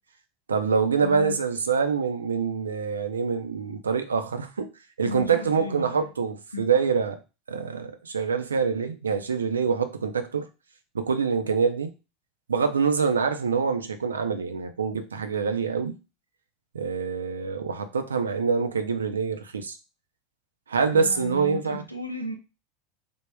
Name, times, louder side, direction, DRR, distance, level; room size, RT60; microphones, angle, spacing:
voice 1, 0.5-4.7 5.0-7.2 7.5-10.5 10.9-11.9 12.5-16.0 16.7-19.8 20.7-21.8, right 5 dB, 75° right, 0.4 m, -25 dB
voice 2, 1.0-1.4 5.0-6.1 6.5-6.7 20.9-22.3, left 3 dB, 90° left, 0.5 m, -34 dB
3.3 x 2.1 x 3.3 m
figure-of-eight pair, 75°, 0 cm